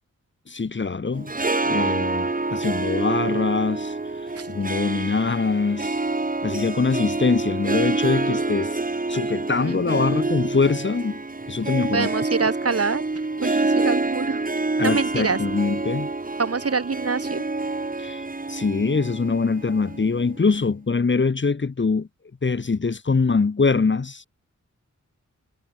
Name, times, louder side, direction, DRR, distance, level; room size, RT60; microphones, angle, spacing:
voice 1, 0.5-1.3 1.6-3.9 4.5-6.0 6.4-8.7 9.1-11.2 11.5-12.1 13.4-13.6 14.8-16.1 18.0-18.2 18.5-22.1 22.4-24.3, left 4 dB, 40° left, 1.2 m, -23 dB
Harp, 1.1-20.5, right 3 dB, 30° right, 2.4 m, -27 dB
voice 2, 9.6-10.2 11.9-13.0 13.4-14.4 14.8-15.4 16.4-17.4, right 4 dB, 50° right, 2.3 m, -26 dB
wide cardioid pair, 100°, 30 cm